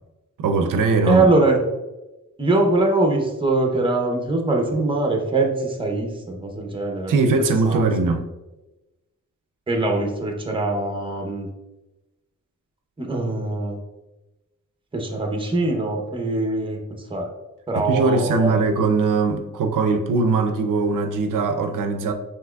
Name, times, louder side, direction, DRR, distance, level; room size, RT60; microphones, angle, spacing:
voice 1, 0.4-1.3 7.1-8.2 17.8-22.1, right 3 dB, 85° right, 0.5 m, -21 dB
voice 2, 1.1-1.6 2.4-7.1 7.7-7.9 9.7-11.5 13.0-13.8 14.9-16.8 17.1-17.3 17.7-18.6, right 2 dB, 15° right, 0.7 m, -22 dB
5.8 x 3.0 x 2.3 m
wide cardioid pair, 130°, 31 cm